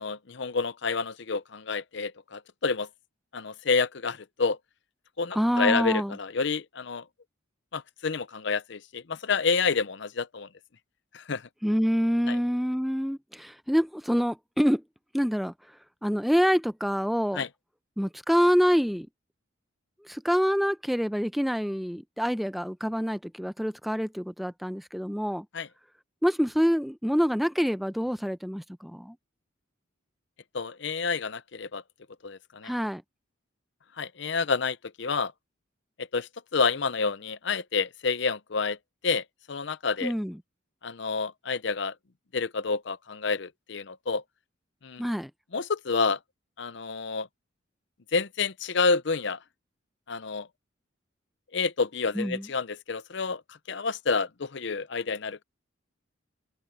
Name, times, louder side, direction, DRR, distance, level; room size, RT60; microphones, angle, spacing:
voice 1, 0.0-2.9 3.3-4.6 5.2-7.0 7.7-10.5 11.1-11.4 12.3-12.4 17.3-17.5 25.5-25.7 30.5-31.8 32.2-32.7 34.0-35.3 36.0-38.8 39.0-40.1 40.8-41.9 42.3-44.2 44.8-45.0 45.5-46.2 46.6-47.3 48.1-49.4 50.1-50.5 51.5-53.4 53.7-55.4, left 4 dB, 60° left, 0.7 m, -29 dB
voice 2, 5.3-6.2 11.6-14.8 15.1-15.5 16.0-17.4 18.0-19.1 20.0-25.4 26.2-29.2 32.6-33.0 40.0-40.4 45.0-45.3 52.1-52.5, equal, ahead, 0.7 m, -26 dB
open air
head